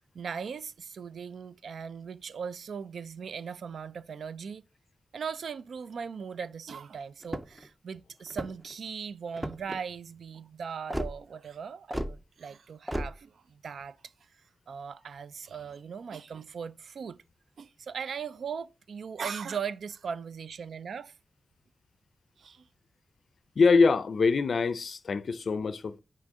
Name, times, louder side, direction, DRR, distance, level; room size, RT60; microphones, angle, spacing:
voice 1, 0.1-4.6 5.1-14.0 14.7-17.2 17.6-21.1 22.4-22.7, right 6 dB, 85° right, 0.3 m, -39 dB
sound 1, 7.2-7.7 8.3-8.7 9.4-9.8 10.9-11.1 11.9-12.1 12.9-13.1, equal, 10° right, 0.5 m, -33 dB
voice 2, 23.6-26.0, left 4 dB, 60° left, 0.4 m, -24 dB
6.1 x 4.5 x 3.6 m
wide cardioid pair, 120°, 0 cm